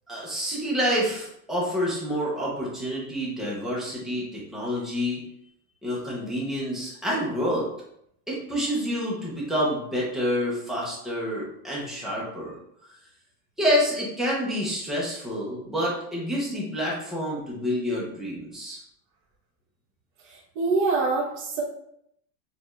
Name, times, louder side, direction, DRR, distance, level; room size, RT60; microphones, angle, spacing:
voice 1, 0.1-5.2 5.8-7.6 8.3-12.5 13.6-18.8, equal, ahead, -7 dB, 0.4 m, -28 dB
voice 2, 20.2-21.6, right 3 dB, 45° right, -5 dB, 0.9 m, -25 dB
6.5 x 2.2 x 2.9 m, 0.73 s
supercardioid pair, 175°, 42 cm